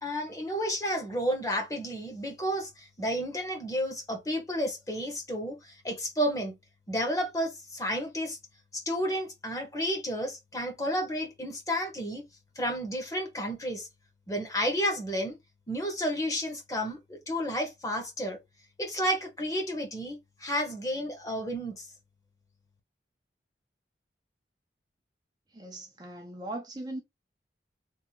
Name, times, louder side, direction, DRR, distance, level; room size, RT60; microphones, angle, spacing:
voice 1, 0.0-6.5 6.9-8.4 8.7-12.2 12.6-13.9 14.3-15.4 15.7-18.4 18.8-21.9, equal, 20° left, 1.1 m, -31 dB
voice 2, 25.5-27.0, right 1 dB, 25° right, 0.7 m, -39 dB
3.6 x 2.4 x 4.5 m
head